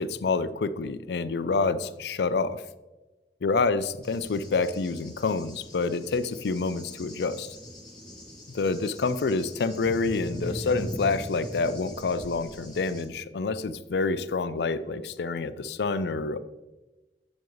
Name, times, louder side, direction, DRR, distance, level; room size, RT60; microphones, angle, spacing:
voice 1, 0.0-2.6 3.4-7.5 8.5-16.4, left 4 dB, 70° left, 14 dB, 0.4 m, -27 dB
Cricket / Thunder, 4.0-13.0, equal, 5° left, 1.5 m, -41 dB
7.4 x 7.0 x 3.1 m, 1.1 s
head